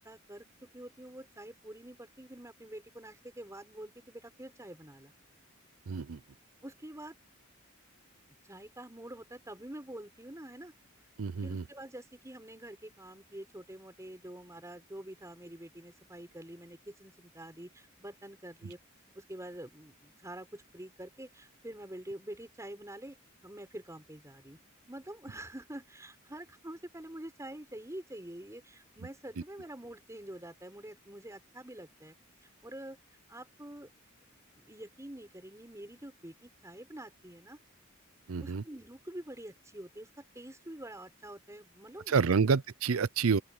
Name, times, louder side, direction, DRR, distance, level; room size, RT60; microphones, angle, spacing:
voice 1, 0.0-5.1 6.6-7.2 8.4-10.7 11.4-18.8 19.1-23.2 23.4-24.6 24.9-32.2 32.6-33.0 33.3-33.9 34.5-37.6 38.4-42.4, right 1 dB, 15° right, 5.6 m, -46 dB
voice 2, 5.9-6.2 11.2-11.6 38.3-38.6 42.1-43.4, right 5 dB, 80° right, 0.6 m, -28 dB
open air
head